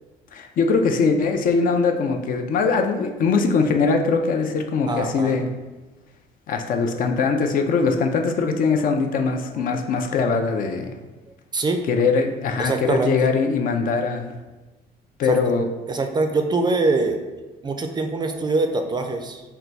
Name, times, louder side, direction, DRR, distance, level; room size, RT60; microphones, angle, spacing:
voice 1, 0.3-5.5 6.5-11.0 11.9-14.3 15.2-15.7, left 4 dB, 55° left, 4 dB, 0.5 m, -21 dB
voice 2, 4.9-5.4 9.5-9.8 11.5-11.8 12.6-13.3 15.2-15.4 15.9-17.2 17.6-19.4, right 3 dB, 25° right, 5 dB, 0.4 m, -23 dB
3.8 x 2.2 x 4.3 m, 1.2 s
cardioid pair, 110°, 17 cm